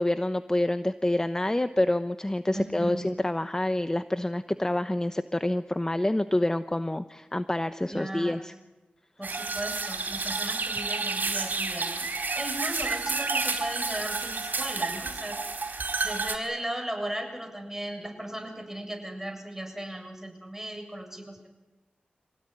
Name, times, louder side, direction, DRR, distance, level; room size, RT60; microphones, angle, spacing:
voice 1, 0.0-8.5, left 1 dB, 20° left, 10 dB, 1.0 m, -27 dB
voice 2, 2.5-3.1 7.9-8.4 9.2-15.4 16.0-21.5, right 1 dB, 10° right, 4 dB, 7.6 m, -37 dB
sound 1, 9.2-16.4, right 4 dB, 65° right, 4.6 m, -30 dB
27.0 x 17.0 x 9.9 m, 1.1 s
cardioid pair, 45°, 3 cm